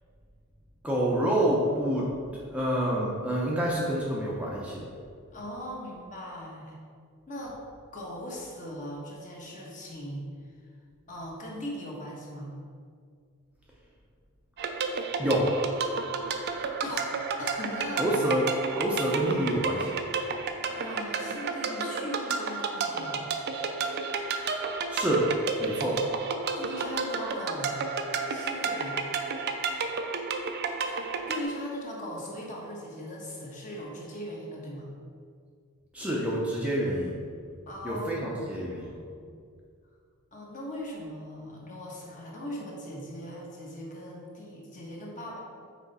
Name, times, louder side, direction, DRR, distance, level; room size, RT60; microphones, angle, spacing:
voice 1, 0.8-2.1 2.5-4.9 15.2-15.5 18.0-19.9 24.9-25.3 25.6-26.0 35.9-37.2 37.8-38.9, right 1 dB, 5° right, -5 dB, 0.6 m, -27 dB
voice 2, 5.3-6.8 7.3-7.6 7.9-10.3 11.1-12.6 16.8-17.1 17.4-18.1 20.3-23.3 26.5-27.9 28.3-29.0 30.9-34.9 37.7-39.3 40.3-45.4, equal, 35° left, -3 dB, 1.2 m, -39 dB
sound 1, 14.6-31.4, right 4 dB, 50° right, 0.4 m, -31 dB
6.0 x 4.4 x 4.1 m, 2.1 s
head